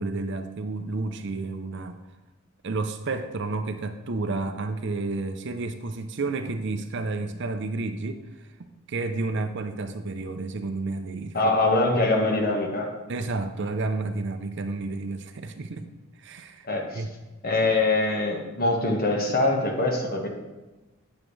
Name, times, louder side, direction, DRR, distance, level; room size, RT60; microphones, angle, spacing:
voice 1, 0.0-2.0 2.6-8.2 8.6-11.5 13.1-15.8 16.2-17.1, right 3 dB, 55° right, 8 dB, 0.6 m, -31 dB
voice 2, 11.3-12.9 16.7-17.0 17.4-20.3, left 2 dB, 45° left, 1 dB, 1.4 m, -23 dB
8.8 x 7.3 x 3.2 m, 1.1 s
head